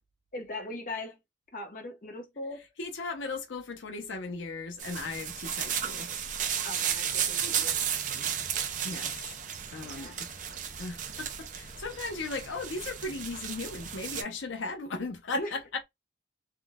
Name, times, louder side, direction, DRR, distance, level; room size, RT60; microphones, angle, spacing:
voice 1, 0.3-1.2 1.5-2.7 6.6-7.8 8.1-8.4 9.8-10.2 15.3-15.6, left 2 dB, 45° left, 0.8 m, -40 dB
voice 2, 2.8-6.1 8.8-9.4 9.7-10.3 10.8-15.6, left 3 dB, 85° left, 0.6 m, -37 dB
sound 1, 4.8-14.2, right 8 dB, 40° right, 0.4 m, -34 dB
3.6 x 2.1 x 2.3 m
head